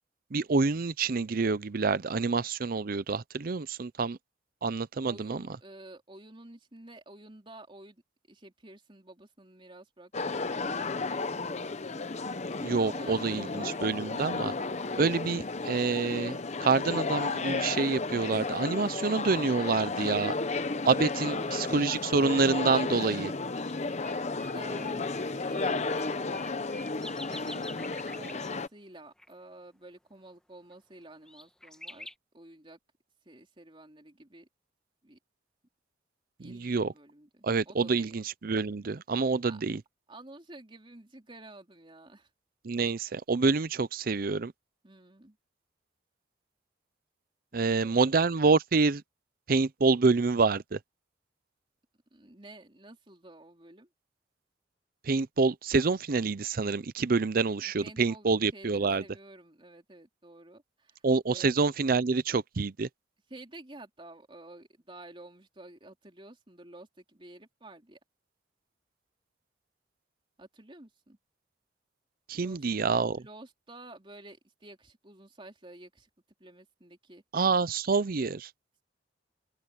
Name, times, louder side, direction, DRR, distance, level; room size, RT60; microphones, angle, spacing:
voice 1, 0.3-4.2 4.6-5.4 12.6-14.5 15.0-20.3 20.8-23.3 36.4-36.9 37.4-39.8 42.6-44.5 47.5-49.0 49.5-50.8 55.0-59.0 61.0-62.9 72.3-73.2 77.3-78.5, right 4 dB, 50° right, 0.6 m, -27 dB
voice 2, 5.0-8.0 8.3-11.4 12.7-14.1 21.1-21.5 21.8-22.2 24.5-26.7 27.3-27.7 28.0-32.1 32.3-32.8 33.2-34.5 35.0-35.2 36.4-38.1 39.5-39.6 40.1-42.3 44.8-45.4 47.5-48.0 52.1-53.9 57.5-61.0 61.3-61.4 63.3-68.0 70.4-71.2 72.3-72.6 73.2-76.1 76.4-77.2, right 1 dB, 30° right, 3.3 m, -50 dB
sound 1, 10.1-28.7, left 3 dB, 40° left, 0.8 m, -33 dB
sound 2, 23.0-23.1 23.6-23.7 24.0-28.6 29.2-29.3 30.7-30.8 31.3-32.1, left 1 dB, 5° left, 1.3 m, -47 dB
open air
head